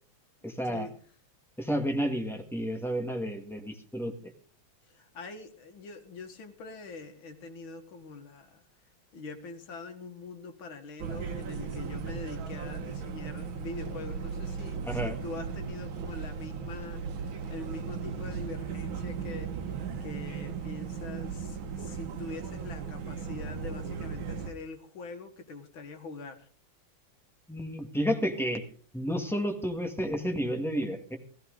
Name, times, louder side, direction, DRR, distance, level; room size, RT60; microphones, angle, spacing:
voice 1, 0.4-0.9 1.6-4.1 14.8-15.2 27.5-28.6 28.9-31.2, equal, ahead, 4 dB, 1.6 m, -31 dB
voice 2, 4.9-8.6 9.1-26.5, left 3 dB, 85° left, 6 dB, 2.4 m, -44 dB
sound 1, 11.0-24.5, right 6 dB, 90° right, 2.0 m, -37 dB
16.5 x 14.5 x 3.9 m, 0.43 s
omnidirectional pair, 2.1 m